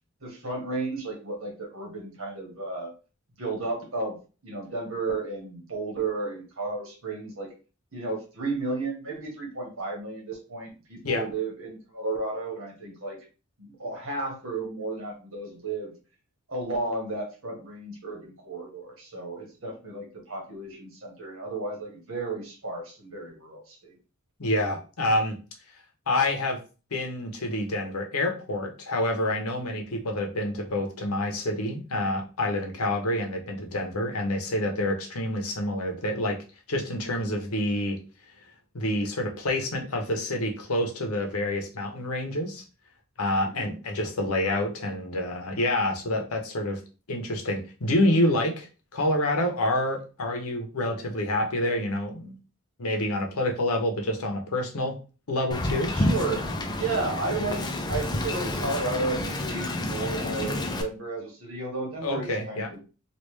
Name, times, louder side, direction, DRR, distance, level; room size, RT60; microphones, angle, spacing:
voice 1, 0.2-2.9 3.4-4.2 4.4-7.5 7.9-13.2 13.6-15.9 16.5-23.9 43.4-43.7 55.9-57.6 57.9-62.8, right 3 dB, 65° right, 0 dB, 1.4 m, -33 dB
voice 2, 24.4-25.4 26.1-26.6 26.9-36.4 36.7-38.0 38.7-42.6 43.2-46.8 47.1-52.3 52.8-54.9 55.3-55.9 62.0-62.7, left 1 dB, 90° left, 3 dB, 0.8 m, -27 dB
Wind, 55.5-60.8, left 1 dB, 20° left, 0.4 m, -29 dB
3.2 x 2.5 x 3.2 m, 0.34 s
head